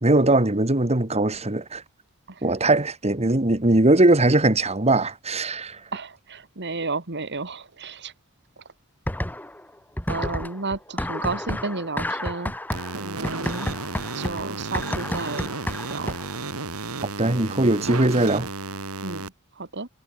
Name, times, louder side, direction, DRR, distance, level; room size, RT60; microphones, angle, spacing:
voice 1, 0.0-1.8 2.4-5.8 17.0-18.5, right 2 dB, 30° right, 2.0 m, -20 dB
voice 2, 5.9-8.1 10.1-12.5 12.9-13.8 14.1-15.5 15.9-16.2 19.0-19.9, right 3 dB, 55° right, 2.6 m, -32 dB
sound 1, 9.1-9.7 10.0-16.4, left 1 dB, 10° left, 1.8 m, -31 dB
sound 2, 12.7-19.3, right 3 dB, 90° right, 2.3 m, -33 dB
head